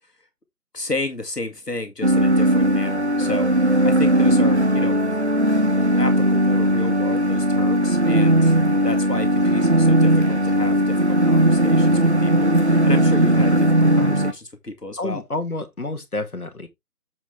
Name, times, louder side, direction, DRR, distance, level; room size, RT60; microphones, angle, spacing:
voice 1, 0.7-5.0 6.0-15.2, left 2 dB, 80° left, 2.0 m, -32 dB
sound 1, 2.0-14.3, right 1 dB, 45° right, 0.8 m, -18 dB
voice 2, 15.0-16.7, left 2 dB, 65° left, 2.0 m, -29 dB
7.6 x 6.1 x 3.2 m
figure-of-eight pair, 170°, 47 cm